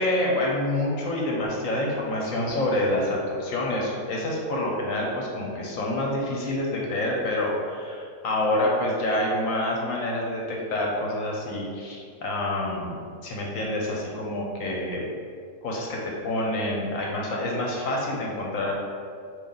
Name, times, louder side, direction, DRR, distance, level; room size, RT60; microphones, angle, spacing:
voice 1, 0.0-15.0 15.6-16.0 16.2-18.7, left 1 dB, 60° left, -2 dB, 1.0 m, -27 dB
4.8 x 2.7 x 3.9 m, 2.2 s
omnidirectional pair, 1.8 m